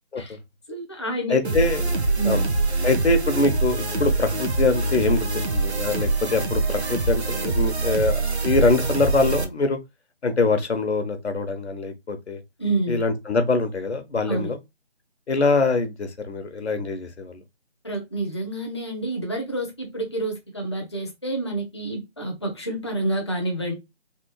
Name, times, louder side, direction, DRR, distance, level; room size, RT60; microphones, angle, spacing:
voice 1, 0.7-1.6 2.1-2.5 12.6-13.0 14.3-14.5 17.8-23.7, right 2 dB, 25° left, 0.5 m, -28 dB
voice 2, 1.3-1.8 2.2-2.4 2.8-9.8 10.2-12.4 12.9-14.6 15.3-17.4, left 3 dB, 80° left, 0.8 m, -24 dB
sound 1, 1.4-9.4, right 3 dB, 80° right, 0.8 m, -24 dB
3.3 x 2.2 x 3.0 m
figure-of-eight pair, 160°, 33 cm